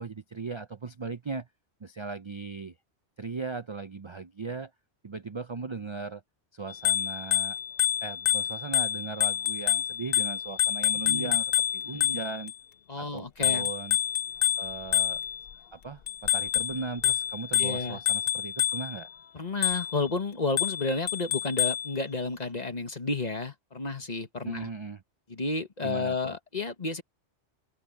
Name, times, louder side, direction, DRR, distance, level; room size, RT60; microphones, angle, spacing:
voice 1, 0.0-1.5 1.8-2.7 3.2-4.7 5.0-6.2 6.5-7.6 8.0-12.5 13.0-14.0 14.6-15.2 15.7-19.1 24.4-25.0 25.8-26.4, right 4 dB, 35° right, 0.5 m, -38 dB
Bicycle bell, 6.7-12.5 13.4-15.5 16.1-19.0 19.6-20.0 20.6-21.9, left 11 dB, 60° left, 0.8 m, -28 dB
voice 2, 10.9-11.4 11.8-12.2 12.9-13.7 17.6-18.0 19.3-24.7 25.3-27.0, left 3 dB, 35° left, 1.6 m, -32 dB
open air
omnidirectional pair, 1.2 m